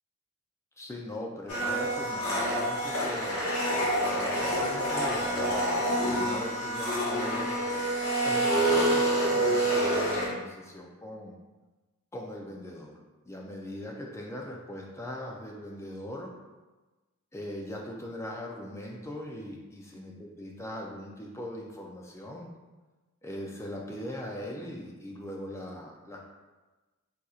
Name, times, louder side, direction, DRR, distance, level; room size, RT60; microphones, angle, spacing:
voice 1, 0.8-7.6 8.2-11.4 12.1-13.0 13.3-16.4 17.3-22.5 23.2-26.2, left 1 dB, 10° left, -1 dB, 0.3 m, -40 dB
Domestic sounds home sounds, 1.5-10.3, right 1 dB, 90° left, 0.9 m, -27 dB
4.2 x 2.5 x 2.3 m, 1.2 s
head